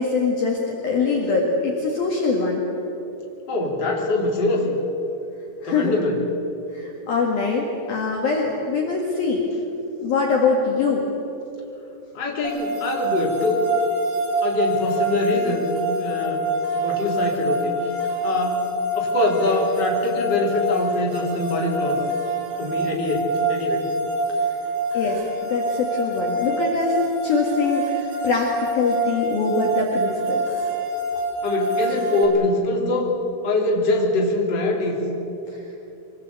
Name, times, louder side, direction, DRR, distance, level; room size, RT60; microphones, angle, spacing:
voice 1, 0.0-2.6 5.6-5.9 6.7-9.4 10.0-11.1 24.5-24.6 24.9-27.0 27.2-30.5 35.5-35.6, left 4 dB, 55° left, -1 dB, 3.2 m, -23 dB
voice 2, 3.5-4.8 5.6-6.2 12.1-13.6 14.4-15.6 15.9-16.5 16.7-17.9 18.2-18.6 18.9-22.0 22.6-23.9 31.4-33.1 33.4-35.0, left 2 dB, 25° left, -2 dB, 3.1 m, -23 dB
sound 1, 12.4-32.3, right 1 dB, 80° right, 5.6 m, -26 dB
24.5 x 20.0 x 8.2 m, 3.0 s
omnidirectional pair, 6.0 m